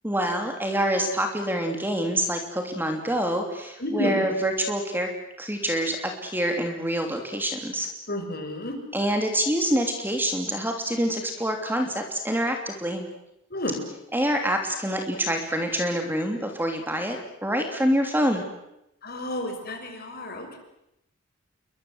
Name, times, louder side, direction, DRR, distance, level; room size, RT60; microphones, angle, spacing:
voice 1, 0.0-5.1 5.4-7.9 8.9-13.0 14.1-17.2 17.4-18.4, equal, 10° right, 4 dB, 2.9 m, -26 dB
voice 2, 3.8-4.4 8.1-8.8 13.5-13.8 19.0-20.6, left 1 dB, 45° left, 4 dB, 6.1 m, -31 dB
29.0 x 23.5 x 8.0 m, 0.84 s
head